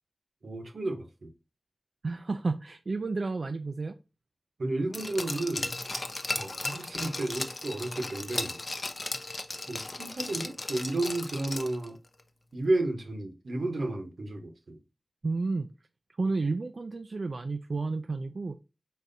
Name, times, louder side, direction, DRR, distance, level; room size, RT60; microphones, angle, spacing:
voice 1, 0.4-1.3 4.6-8.6 9.7-12.0 12.5-14.8, right 2 dB, 80° right, 1.0 m, -32 dB
voice 2, 2.0-4.0 15.2-15.7 16.2-18.6, right 3 dB, 65° right, 0.3 m, -31 dB
Glass, 4.9-11.9 12.2-12.3, left 2 dB, 45° left, 0.6 m, -36 dB
4.5 x 4.1 x 2.6 m
wide cardioid pair, 80°, 0 cm